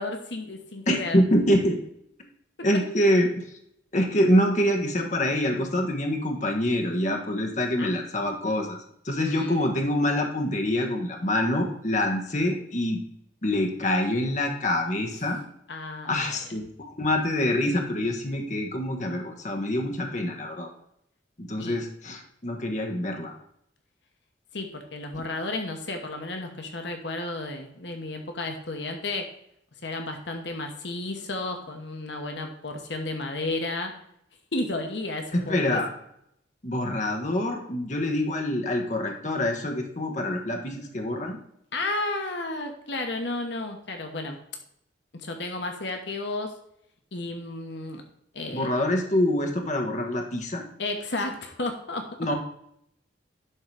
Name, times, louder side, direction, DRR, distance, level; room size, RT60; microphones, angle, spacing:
voice 1, 0.0-1.2 2.7-2.8 7.8-7.9 9.2-9.7 15.7-16.4 21.6-21.8 24.5-29.3 29.8-34.0 34.5-35.8 41.7-44.4 45.2-46.6 47.1-48.0 48.3-48.7 50.8-52.1, left 2 dB, 65° left, 4 dB, 1.1 m, -32 dB
voice 2, 0.9-1.8 2.6-3.5 3.9-8.8 9.0-13.0 13.4-15.4 16.1-20.7 21.4-23.3 35.3-35.9 36.6-41.4 48.5-50.6 52.2-52.4, left 1 dB, 40° left, 2 dB, 1.2 m, -25 dB
11.0 x 3.8 x 4.7 m, 0.74 s
head